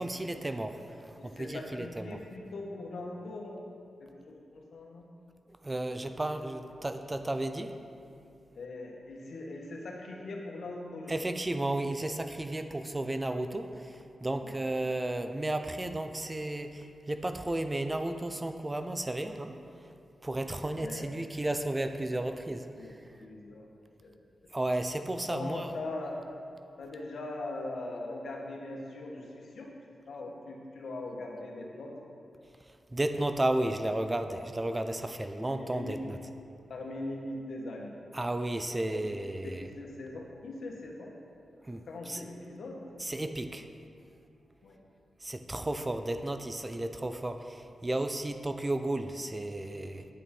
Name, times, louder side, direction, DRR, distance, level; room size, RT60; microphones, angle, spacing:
voice 1, 0.0-2.2 5.5-7.7 11.1-19.6 20.2-23.0 24.5-25.7 32.9-36.2 38.1-39.7 41.6-42.2 43.0-43.7 45.2-50.1, right 1 dB, 20° right, 8 dB, 0.5 m, -33 dB
voice 2, 1.2-3.6 4.0-5.1 5.9-6.1 8.5-11.3 14.4-14.6 20.7-21.1 22.7-22.9 23.2-23.7 24.0-24.1 25.2-26.2 26.8-29.7 30.1-31.9 35.4-36.0 36.7-38.0 38.8-39.2 39.4-41.1 41.9-42.8 44.6-44.8, left 2 dB, 75° left, 0 dB, 1.3 m, -41 dB
9.2 x 8.2 x 4.3 m, 2.6 s
cardioid pair, 90°, 0 cm